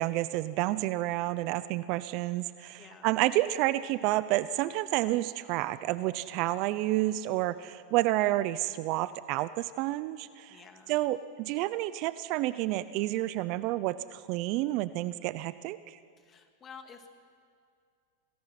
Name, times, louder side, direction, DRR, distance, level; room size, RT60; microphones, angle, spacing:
voice 1, 0.0-10.6 10.9-16.0, right 16 dB, 50° right, 15 dB, 0.7 m, -30 dB
voice 2, 2.7-3.2 7.6-7.7 10.5-11.0 16.2-17.2, left 6 dB, 30° left, 5 dB, 2.4 m, -51 dB
27.0 x 18.0 x 6.0 m, 2.2 s
hypercardioid pair, 115°, 0 cm